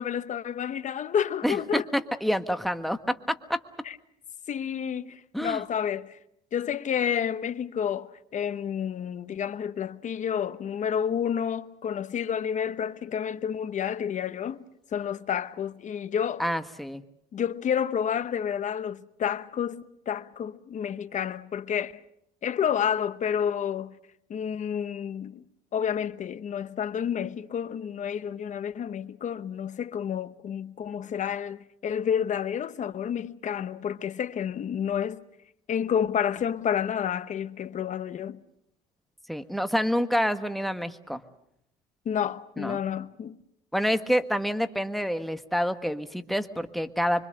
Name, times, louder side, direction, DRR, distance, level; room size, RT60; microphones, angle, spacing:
voice 1, 0.0-1.8 3.8-4.0 4.5-6.2 6.5-14.6 14.9-16.4 17.3-22.0 22.4-23.9 24.3-25.4 25.7-35.2 35.7-38.4 42.0-43.4, left 8 dB, 45° left, 1.1 m, -30 dB
voice 2, 1.4-3.6 5.3-5.6 16.4-17.0 39.3-41.2 42.6-42.8 43.7-47.3, equal, ahead, 1.4 m, -27 dB
25.5 x 25.0 x 6.6 m
cardioid pair, 110°, 17 cm